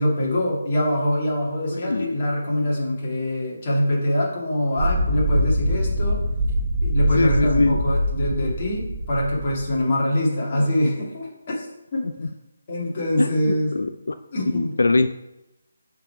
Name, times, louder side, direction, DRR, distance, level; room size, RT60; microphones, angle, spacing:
voice 1, 0.0-6.2 6.8-11.7 11.9-12.1 12.7-13.7 14.3-14.7, left 1 dB, 30° left, -4 dB, 2.0 m, -24 dB
voice 2, 1.7-2.1 7.2-7.8 10.5-10.6 12.2-12.3 13.2-14.1 14.5-15.1, left 3 dB, 80° left, 9 dB, 0.4 m, -22 dB
sound 1, 4.8-9.8, equal, 35° right, 0.9 m, -23 dB
6.6 x 4.0 x 5.6 m, 0.95 s
hypercardioid pair, 175°, 0 cm